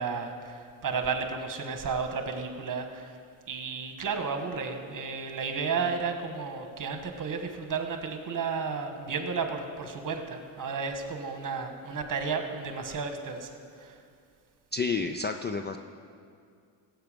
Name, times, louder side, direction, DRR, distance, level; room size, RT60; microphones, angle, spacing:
voice 1, 0.0-3.1 3.5-13.5 13.8-13.9, right 5 dB, 40° right, 5 dB, 1.5 m, -33 dB
voice 2, 14.7-15.8, left 4 dB, 25° left, 7 dB, 0.4 m, -30 dB
16.5 x 8.1 x 5.2 m, 2.3 s
cardioid pair, 100°, 48 cm